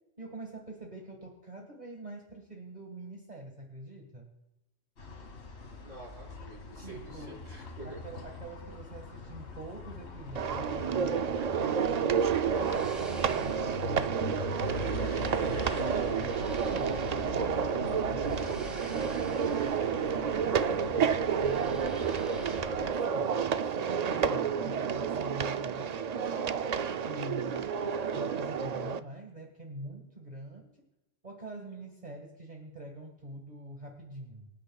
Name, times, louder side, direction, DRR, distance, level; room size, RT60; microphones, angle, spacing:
voice 1, 0.2-4.3 6.8-7.4 7.8-11.3 11.7-16.4 16.7-17.0 17.3-17.9 18.9-21.9 22.2-26.0 26.2-26.3 27.1-27.8 28.1-30.7 31.2-34.5, right 1 dB, 35° right, 1 dB, 1.7 m, -45 dB
sound 1, 5.0-22.9, left 3 dB, 60° left, 1.8 m, -42 dB
voice 2, 5.8-8.0 18.3-18.8, right 1 dB, 90° right, -10 dB, 5.2 m, -47 dB
sound 2, 10.3-29.0, right 7 dB, 70° right, 0.4 m, -30 dB
sound 3, 11.7-22.6, equal, ahead, 1.8 m, -53 dB
25.0 x 9.4 x 2.3 m, 0.97 s
omnidirectional pair, 1.3 m